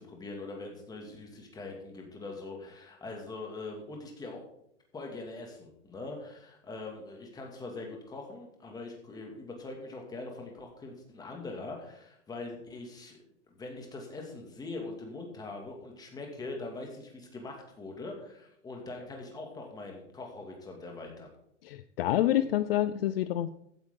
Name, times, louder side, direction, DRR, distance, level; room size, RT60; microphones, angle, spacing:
voice 1, 0.0-4.4 4.9-13.2 13.5-21.3, left 3 dB, 10° left, 1 dB, 2.4 m, -42 dB
voice 2, 21.6-23.5, left 12 dB, 55° left, 13 dB, 0.5 m, -27 dB
15.0 x 9.0 x 3.9 m, 0.75 s
hypercardioid pair, 150°, 36 cm